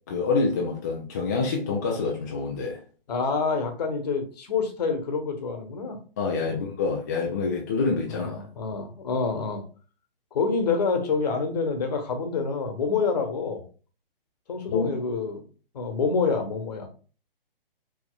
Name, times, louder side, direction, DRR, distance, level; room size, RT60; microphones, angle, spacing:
voice 1, 0.1-2.8 6.2-8.3 14.7-14.9, left 4 dB, 20° left, 0.4 m, -26 dB
voice 2, 3.1-6.0 6.5-6.7 8.1-9.6 10.3-13.6 14.5-15.4 15.7-16.9, left 4 dB, 45° left, 1.1 m, -27 dB
5.0 x 3.5 x 2.3 m
figure-of-eight pair, 130°, 29 cm